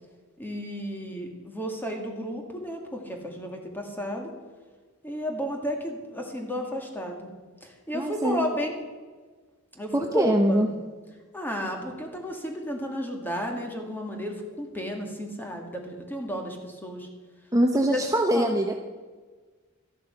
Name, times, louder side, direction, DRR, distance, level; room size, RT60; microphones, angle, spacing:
voice 1, 0.4-4.3 5.0-7.3 7.6-8.8 9.7-10.7 11.3-17.1 17.9-18.0 18.3-18.5, equal, 10° left, 2 dB, 2.0 m, -33 dB
voice 2, 7.9-8.4 9.9-10.7 17.5-18.7, right 1 dB, 15° right, 3 dB, 0.7 m, -23 dB
13.5 x 10.5 x 5.7 m, 1.4 s
head